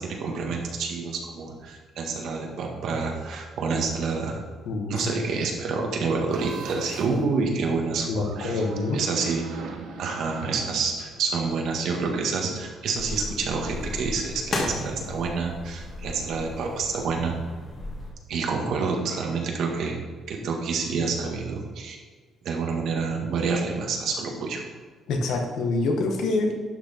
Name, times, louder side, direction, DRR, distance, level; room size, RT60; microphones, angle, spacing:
voice 1, 0.0-4.4 4.9-8.6 8.9-9.4 10.0-17.3 18.3-20.0 20.3-22.0 22.4-24.6, right 4 dB, 70° right, 1 dB, 1.8 m, -28 dB
voice 2, 4.6-5.1 8.1-9.0 25.1-26.5, left 3 dB, 70° left, 3 dB, 1.5 m, -26 dB
sound 1, 6.3-7.2 8.3-11.4, right 5 dB, 85° right, 1.2 m, -39 dB
sound 2, 13.0-18.1, left 2 dB, 40° left, 2.0 m, -34 dB
11.5 x 6.1 x 4.4 m, 1.5 s
cardioid pair, 140°, 0 cm